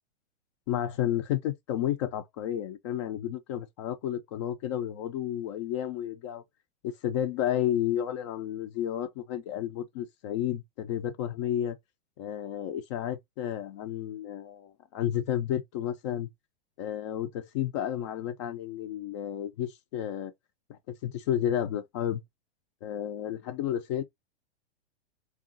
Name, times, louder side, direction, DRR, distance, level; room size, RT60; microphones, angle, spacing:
voice 1, 0.7-6.4 6.8-11.8 12.2-16.3 16.8-20.3 20.7-22.2 22.8-24.0, left 11 dB, 30° left, 0.4 m, -31 dB
3.7 x 2.4 x 3.8 m
supercardioid pair, 155°, 32 cm